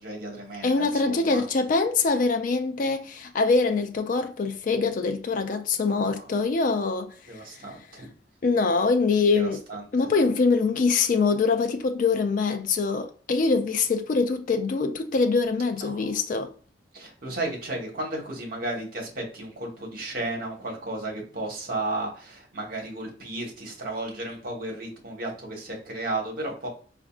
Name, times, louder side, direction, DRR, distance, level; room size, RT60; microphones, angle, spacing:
voice 1, 0.0-1.5 6.2-6.3 7.3-8.1 9.3-9.8 15.8-16.1 16.9-26.7, right 2 dB, 55° right, 1.2 m, -34 dB
voice 2, 0.6-7.1 8.4-9.6 9.9-16.5, left 4 dB, 45° left, 0.4 m, -24 dB
4.3 x 2.5 x 2.3 m
head